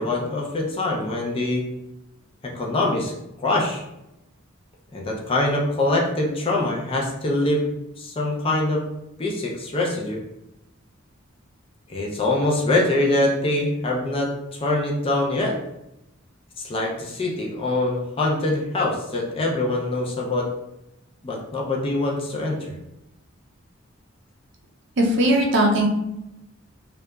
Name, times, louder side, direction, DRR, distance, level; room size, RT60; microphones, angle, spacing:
voice 1, 0.0-1.6 2.4-3.1 3.4-3.8 4.9-7.7 8.0-8.8 9.2-10.2 11.9-15.6 16.6-20.5 21.2-22.7, left 2 dB, 25° left, -1 dB, 0.4 m, -24 dB
voice 2, 25.0-25.9, right 1 dB, 60° right, 0 dB, 0.5 m, -18 dB
2.8 x 2.2 x 2.2 m, 0.89 s
head